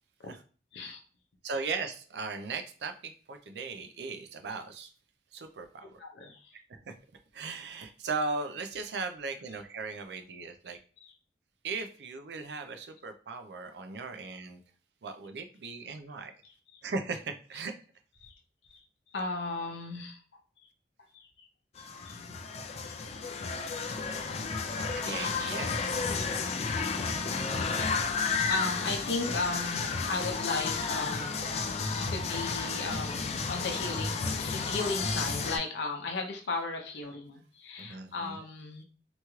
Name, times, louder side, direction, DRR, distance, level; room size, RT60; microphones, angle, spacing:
voice 1, 1.4-4.9 5.3-5.9 6.5-6.9 7.3-10.8 11.6-14.6 15.0-16.3 16.8-17.7 24.9-25.7 37.8-38.4, right 4 dB, 70° right, 7 dB, 0.4 m, -37 dB
voice 2, 6.0-6.5 11.0-11.1 16.7-16.8 18.2-18.4 18.6-18.8 19.1-20.2 21.1-21.5 21.8-22.4 22.8-23.0 24.2-24.8 28.3-31.8 32.1-38.8, left 3 dB, 80° left, 2 dB, 0.6 m, -36 dB
sound 1, 21.8-35.6, left 4 dB, 35° left, 0.3 m, -32 dB
3.0 x 2.9 x 2.3 m, 0.39 s
head